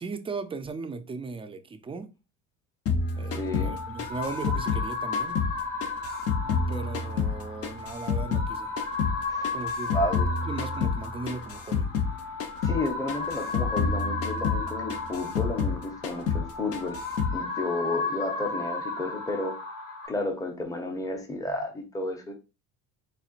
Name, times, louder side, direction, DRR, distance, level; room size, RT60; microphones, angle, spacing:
voice 1, 0.0-2.1 3.2-5.4 6.4-8.7 9.5-9.9 10.4-11.9, right 4 dB, 15° right, 0.4 m, -37 dB
sound 1, 2.9-5.6 5.8-8.5 8.8-12.1 12.4-12.8 13.1-16.5 16.7-17.4, left 5 dB, 45° left, 0.7 m, -29 dB
sound 2, 3.1-20.1, left 3 dB, 85° left, 1.8 m, -34 dB
voice 2, 3.3-3.7 9.3-9.5 9.9-10.3 12.6-17.0 17.3-19.6 20.1-22.3, left 2 dB, 10° left, 0.8 m, -32 dB
4.3 x 3.5 x 2.4 m
cardioid pair, 110°, 33 cm